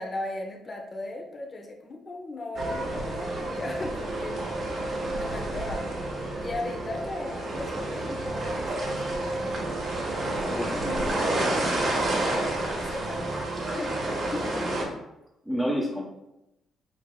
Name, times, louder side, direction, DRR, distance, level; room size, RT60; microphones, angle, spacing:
voice 1, 0.0-6.0 6.4-9.8 10.4-14.7, left 2 dB, 35° left, 2 dB, 0.6 m, -38 dB
sound 1, 2.5-14.8, right 2 dB, 55° right, 1.2 m, -30 dB
voice 2, 10.5-11.5 14.5-14.8 15.4-16.0, equal, 5° right, -4 dB, 0.9 m, -30 dB
6.5 x 2.9 x 2.2 m, 0.89 s
cardioid pair, 90°, 0 cm